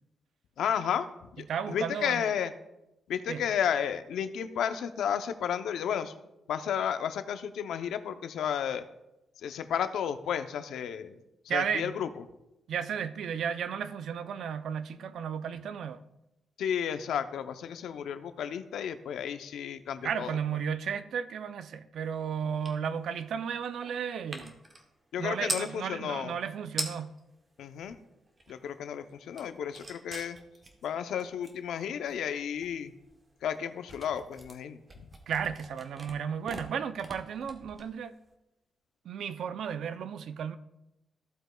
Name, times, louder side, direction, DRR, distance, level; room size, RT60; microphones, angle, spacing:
voice 1, 0.6-1.1 1.3-2.5 3.1-6.1 6.5-8.8 9.4-11.2 11.4-12.1 16.6-20.3 25.1-26.4 27.6-28.0 28.5-30.4 30.8-32.9 33.4-35.1, left 8 dB, 85° left, 0.6 m, -32 dB
voice 2, 1.5-2.3 3.3-3.4 11.5-11.9 12.7-16.0 20.0-24.5 25.2-27.1 35.3-38.1 39.0-40.6, right 7 dB, 70° right, 0.5 m, -34 dB
sound 1, 22.6-22.8 23.1-25.7 26.4-26.5 26.7-27.2 27.6-28.7 29.1-38.3, right 2 dB, 25° right, 1.0 m, -42 dB
14.5 x 8.0 x 2.3 m
wide cardioid pair, 145°, 0 cm